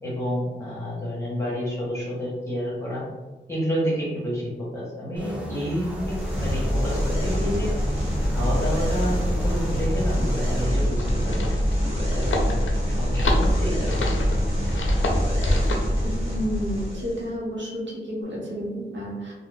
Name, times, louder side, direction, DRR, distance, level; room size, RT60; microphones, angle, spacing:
voice 1, 0.0-3.0 3.5-7.7 8.3-11.6 12.1-12.5 12.8-14.3, equal, 15° left, -7 dB, 1.2 m, -29 dB
sound 1, 5.2-10.7, equal, 5° right, 0.5 m, -36 dB
sound 2, 5.8-17.3, equal, 30° right, 1.2 m, -25 dB
sound 3, 10.7-15.9, left 1 dB, 85° left, 0.5 m, -28 dB
voice 2, 16.0-19.3, equal, 65° right, -4 dB, 0.8 m, -31 dB
2.7 x 2.0 x 3.4 m, 1.2 s
wide cardioid pair, 100°, 20 cm